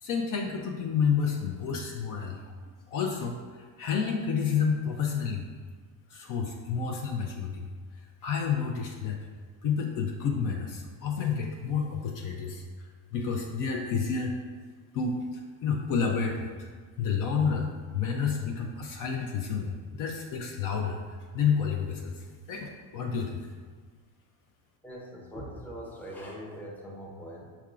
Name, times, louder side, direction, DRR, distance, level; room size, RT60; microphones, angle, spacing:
voice 1, 0.0-2.5 2.9-5.5 6.1-7.7 8.2-9.2 9.6-14.3 14.9-16.7 17.0-23.4, left 6 dB, 45° left, 1 dB, 0.5 m, -30 dB
voice 2, 24.8-27.5, equal, 5° left, -3 dB, 0.6 m, -41 dB
5.7 x 3.4 x 2.4 m, 1.5 s
cardioid pair, 120°, 44 cm